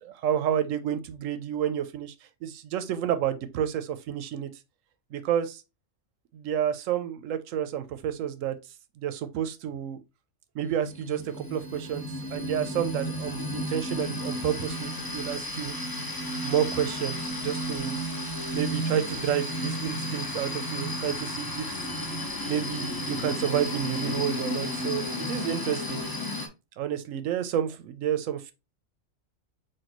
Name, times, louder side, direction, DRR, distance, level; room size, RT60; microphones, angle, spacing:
voice 1, 0.0-2.1 2.4-4.5 5.1-5.6 6.3-8.6 9.0-10.0 10.5-12.0 12.3-15.7 16.4-18.0 18.5-21.8 22.5-26.0 26.8-28.5, right 9 dB, 90° right, 1.0 m, -30 dB
sound 1, 10.6-26.5, equal, 20° left, 0.6 m, -33 dB
5.9 x 2.6 x 2.9 m
omnidirectional pair, 1.3 m